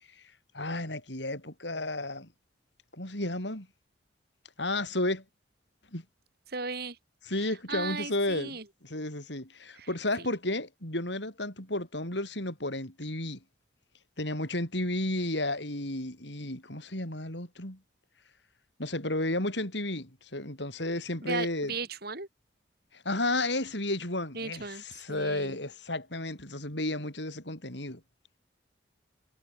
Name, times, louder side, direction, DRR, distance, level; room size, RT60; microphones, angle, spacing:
voice 1, 0.5-2.3 3.0-3.7 4.6-5.2 5.9-6.0 7.3-13.4 14.2-17.8 18.8-21.7 22.9-28.0, left 1 dB, 65° left, 7.0 m, -32 dB
voice 2, 6.5-7.0 7.4-8.6 9.7-9.9 10.2-10.3 21.2-22.3 24.3-25.6, right 4 dB, 55° right, 6.8 m, -37 dB
head